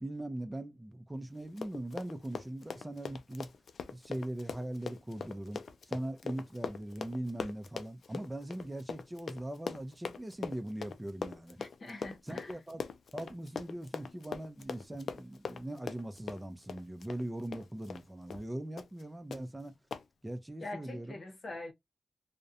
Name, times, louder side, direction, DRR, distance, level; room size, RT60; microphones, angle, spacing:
voice 1, 0.0-3.5 3.9-11.6 12.2-12.8 13.1-19.8 20.2-21.2, right 1 dB, 20° right, 0.5 m, -40 dB
Run, 1.4-18.1 18.3-18.5 18.8-19.0 19.3-19.4 19.9-20.0, left 5 dB, 85° left, 0.3 m, -42 dB
voice 2, 11.6-12.5 20.6-21.7, left 2 dB, 60° left, 0.7 m, -43 dB
2.4 x 2.1 x 2.7 m
cardioid pair, 55°, 0 cm